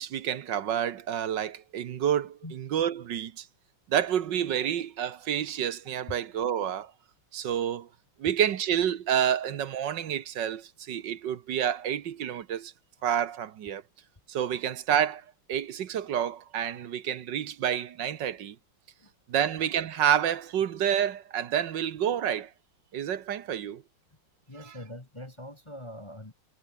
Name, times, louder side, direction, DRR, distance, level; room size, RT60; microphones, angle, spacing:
voice 1, 0.0-3.4 3.9-6.9 7.3-7.9 8.2-12.7 13.0-13.8 14.3-15.2 15.5-18.5 19.3-22.5 22.9-23.8, right 9 dB, 60° right, 1.6 m, -29 dB
voice 2, 24.5-26.3, left 1 dB, 15° left, 1.6 m, -44 dB
omnidirectional pair, 2.4 m